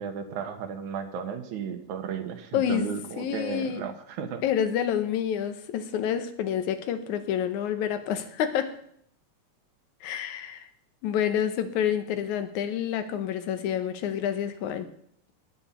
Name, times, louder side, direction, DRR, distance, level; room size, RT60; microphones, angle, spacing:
voice 1, 0.0-4.4, right 7 dB, 90° right, 6 dB, 2.6 m, -34 dB
voice 2, 2.5-2.9 3.2-3.8 4.4-8.8 10.0-10.7 11.0-14.9, left 9 dB, 85° left, 10 dB, 2.3 m, -28 dB
19.0 x 7.4 x 4.4 m, 0.66 s
omnidirectional pair, 3.3 m